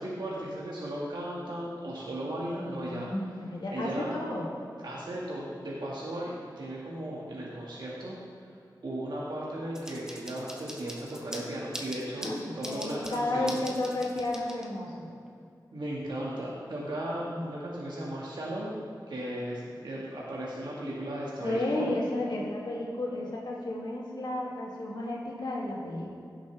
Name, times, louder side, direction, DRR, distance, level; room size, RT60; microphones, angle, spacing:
voice 1, 0.0-3.1 3.7-4.1 4.8-8.2 8.8-13.6 15.7-18.8 19.1-21.9, right 1 dB, 80° right, -6 dB, 1.8 m, -36 dB
voice 2, 2.4-4.5 12.2-15.1 17.2-17.5 21.4-26.1, left 1 dB, 80° left, -4 dB, 2.4 m, -33 dB
sound 1, 9.8-15.0, equal, 10° right, 1.3 m, -43 dB
16.5 x 7.3 x 3.4 m, 2.5 s
wide cardioid pair, 75°, 8 cm